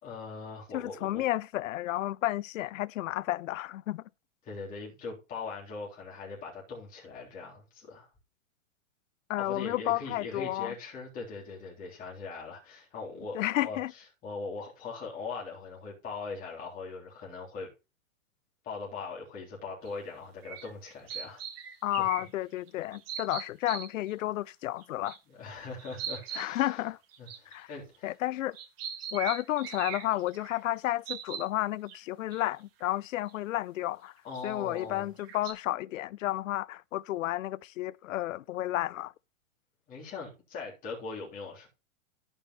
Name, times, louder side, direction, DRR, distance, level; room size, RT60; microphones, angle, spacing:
voice 1, 0.0-1.2 4.4-8.1 9.4-17.7 18.6-21.4 22.0-22.1 25.3-26.8 27.2-28.2 34.2-35.1 39.9-41.7, left 4 dB, 20° left, 3.5 m, -41 dB
voice 2, 0.7-4.0 9.3-10.7 13.3-13.9 21.8-25.2 26.4-27.0 27.5-27.7 28.0-28.6 29.1-34.1 34.4-39.1, left 15 dB, 75° left, 0.6 m, -32 dB
sound 1, 19.9-20.0 20.4-22.2 22.7-24.1 24.8-25.2 25.5-25.6 25.8-26.5 27.1-28.0 28.5-30.6 31.0-31.5 31.9-32.0 32.3-32.4 32.8-33.0 33.3-33.4 34.3-34.8 35.2-35.5, right 8 dB, 45° right, 1.8 m, -40 dB
15.0 x 5.4 x 3.1 m
hypercardioid pair, 160°, 40 cm